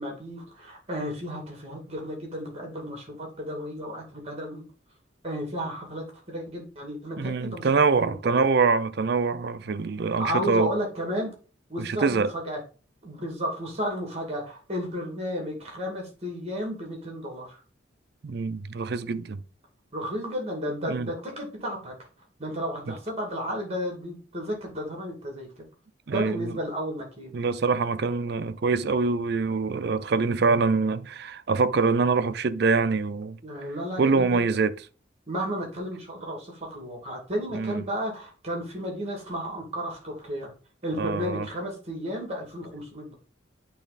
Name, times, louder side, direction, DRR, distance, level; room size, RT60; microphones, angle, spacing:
voice 1, 0.0-4.6 5.2-7.7 8.0-8.5 10.2-11.3 11.7-12.6 13.0-17.6 19.9-21.9 22.4-25.6 26.1-27.4 33.4-34.4 35.3-40.5 40.8-43.1, equal, 35° right, 2.1 m, -33 dB
voice 2, 7.2-10.7 11.8-12.3 18.2-19.4 20.8-21.1 26.1-26.6 27.3-33.4 34.0-34.8 37.5-37.8 41.0-41.5, right 4 dB, 60° right, 0.5 m, -24 dB
8.4 x 3.3 x 4.0 m
head